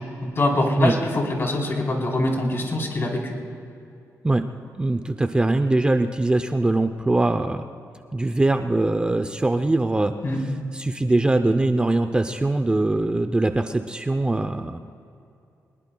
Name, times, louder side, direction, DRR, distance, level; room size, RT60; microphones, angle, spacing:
voice 1, 0.4-3.3 10.2-10.4, left 2 dB, 40° left, -1 dB, 3.8 m, -24 dB
voice 2, 4.8-7.7 8.1-10.1 10.4-14.8, right 2 dB, 15° right, 8 dB, 0.6 m, -22 dB
23.5 x 21.0 x 2.3 m, 2.5 s
cardioid pair, 95°, 6 cm